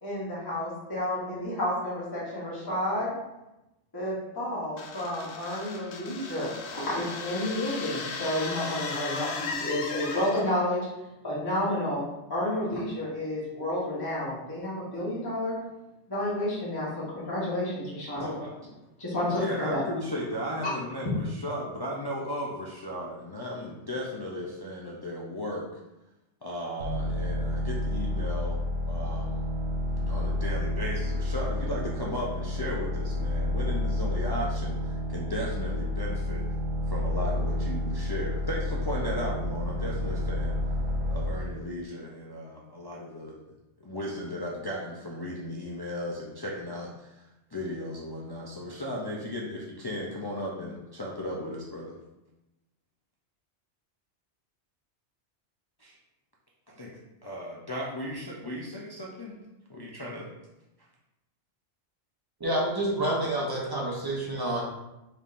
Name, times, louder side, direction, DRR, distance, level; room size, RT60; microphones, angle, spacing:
voice 1, 0.0-3.1 3.9-10.8 11.2-12.0 12.3-15.6 16.1-18.3 19.0-19.8 20.6-20.7, left 1 dB, 20° left, -8 dB, 1.1 m, -30 dB
sound 1, 4.8-10.7, left 4 dB, 75° left, 0.8 m, -37 dB
voice 2, 18.2-18.5 19.3-25.7 26.4-28.6 28.9-29.5 30.0-36.5 36.9-40.6 41.1-43.4 43.8-51.9 55.8-56.0 56.7-59.4 59.7-60.3, left 1 dB, 40° left, -4 dB, 0.3 m, -36 dB
sound 2, 26.8-41.5, left 1 dB, 80° right, 1.0 m, -30 dB
voice 3, 62.4-64.6, right 1 dB, 20° right, -4 dB, 0.9 m, -28 dB
4.3 x 3.5 x 2.5 m, 0.95 s
omnidirectional pair, 1.2 m